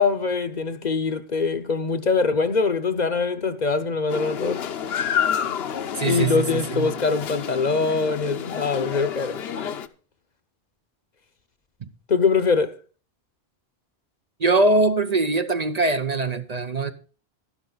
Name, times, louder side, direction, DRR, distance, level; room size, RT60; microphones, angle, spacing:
voice 1, 0.0-4.6 6.0-9.4 12.1-12.7, left 4 dB, 50° left, 0.8 m, -23 dB
sound 1, 4.1-9.9, left 8 dB, 75° left, 1.0 m, -29 dB
voice 2, 6.0-6.9 14.4-16.9, right 2 dB, 45° right, 0.7 m, -22 dB
12.0 x 11.0 x 3.9 m
omnidirectional pair, 1.1 m